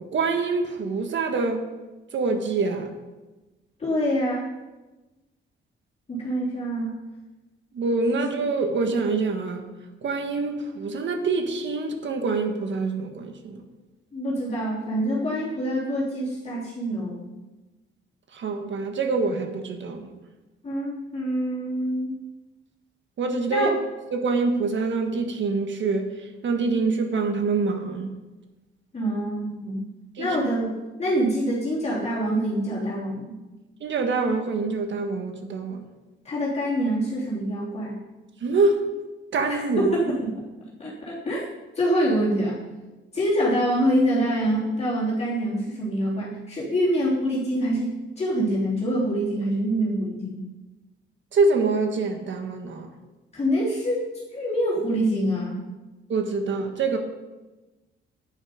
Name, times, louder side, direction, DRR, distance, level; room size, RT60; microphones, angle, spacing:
voice 1, 0.0-1.6 2.1-2.9 7.7-9.7 10.0-13.6 18.3-20.1 23.2-23.7 24.1-26.1 26.4-28.1 30.2-30.4 33.8-35.8 38.4-38.9 39.3-39.9 51.3-52.9 56.1-57.0, right 3 dB, 65° right, 5 dB, 1.6 m, -25 dB
voice 2, 3.8-4.5 6.1-7.0 8.2-8.3 14.1-17.2 20.6-22.2 23.5-23.8 28.9-29.8 30.2-33.4 36.2-38.0 39.5-40.3 40.8-41.5 41.7-42.6 43.1-50.5 53.3-55.6, equal, 30° left, -6 dB, 3.3 m, -25 dB
10.0 x 9.1 x 5.2 m, 1.1 s
cardioid pair, 115°, 21 cm